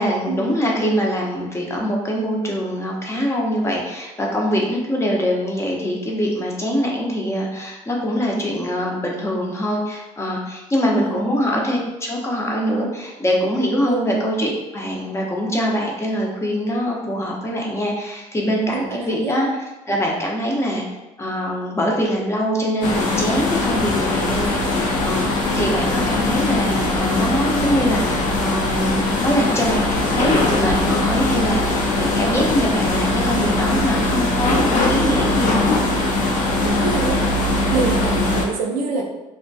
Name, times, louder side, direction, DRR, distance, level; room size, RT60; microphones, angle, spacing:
voice 1, 0.0-19.5 19.9-20.9 21.2-35.7, equal, 20° left, -1 dB, 0.6 m, -23 dB
voice 2, 10.9-11.3 13.9-14.1 18.7-19.3 36.6-37.2 37.7-39.0, right 4 dB, 70° right, 1 dB, 0.4 m, -25 dB
sound 1, 22.8-38.4, left 2 dB, 70° left, 0.5 m, -20 dB
2.2 x 2.1 x 2.6 m, 1.0 s
supercardioid pair, 70°, 14 cm